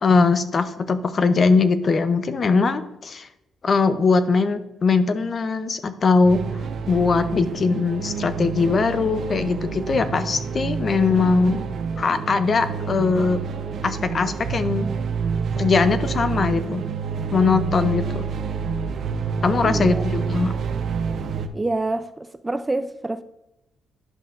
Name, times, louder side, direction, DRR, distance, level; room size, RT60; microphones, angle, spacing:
voice 1, 0.0-3.3 3.6-6.4 6.9-11.7 12.0-13.4 13.8-14.9 15.6-16.8 17.3-18.3 19.4-20.5, left 4 dB, 40° left, 0.6 m, -21 dB
sound 1, 6.2-21.5, right 6 dB, 60° right, 0.6 m, -28 dB
voice 2, 19.6-20.0 21.5-23.2, right 2 dB, 15° right, 0.4 m, -27 dB
11.0 x 5.6 x 2.5 m
cardioid pair, 90°, 0 cm